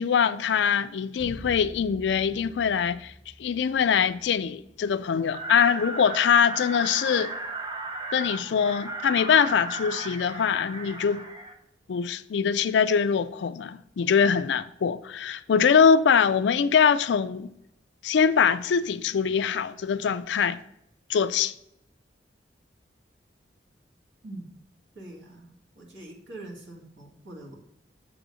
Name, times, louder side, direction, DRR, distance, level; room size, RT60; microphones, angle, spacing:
voice 1, 0.0-3.1 3.4-7.3 8.1-11.3 11.9-17.5 18.0-20.6 21.1-21.5, left 7 dB, 70° left, 0.4 m, -23 dB
sound 1, 1.2-6.2, left 1 dB, 55° right, 3.0 m, -48 dB
sound 2, 5.3-11.5, right 2 dB, 25° right, 0.8 m, -36 dB
voice 2, 24.9-27.6, right 2 dB, 85° right, 2.0 m, -43 dB
7.0 x 3.9 x 6.1 m
head